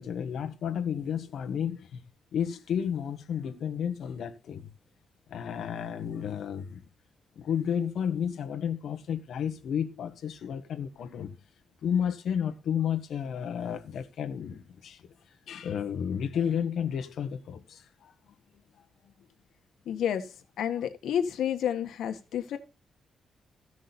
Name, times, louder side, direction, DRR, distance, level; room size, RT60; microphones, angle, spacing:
voice 1, 0.0-2.0 2.3-4.7 5.3-6.8 7.3-11.3 11.8-15.0 15.5-18.1, left 8 dB, 65° left, 1.5 m, -32 dB
voice 2, 19.8-20.3 20.6-22.6, left 9 dB, 85° left, 1.6 m, -30 dB
15.0 x 6.2 x 4.2 m
wide cardioid pair, 160°, 0 cm